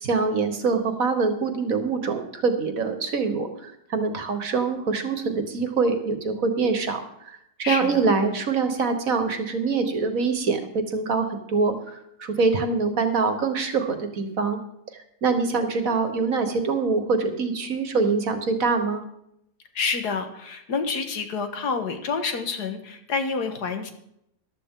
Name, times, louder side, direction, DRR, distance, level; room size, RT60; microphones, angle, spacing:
voice 1, 0.0-7.0 7.3-14.6 15.2-19.0, right 4 dB, 55° right, 7 dB, 1.7 m, -24 dB
voice 2, 7.6-8.1 19.8-23.9, left 5 dB, 75° left, 6 dB, 1.9 m, -28 dB
14.5 x 12.0 x 3.8 m, 0.77 s
omnidirectional pair, 1.8 m